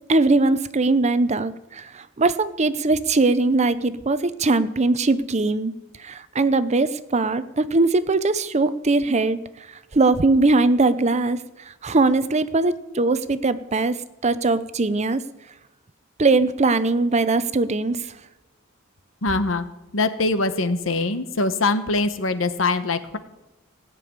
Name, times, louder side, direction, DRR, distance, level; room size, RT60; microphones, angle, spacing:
voice 1, 0.1-5.7 6.0-9.4 9.9-11.4 11.7-14.0 14.2-15.2 16.2-18.0, right 3 dB, 35° right, 14 dB, 0.7 m, -20 dB
voice 2, 19.2-19.6 19.9-23.2, left 3 dB, 80° left, 11 dB, 1.1 m, -23 dB
17.0 x 6.9 x 9.5 m, 1.0 s
head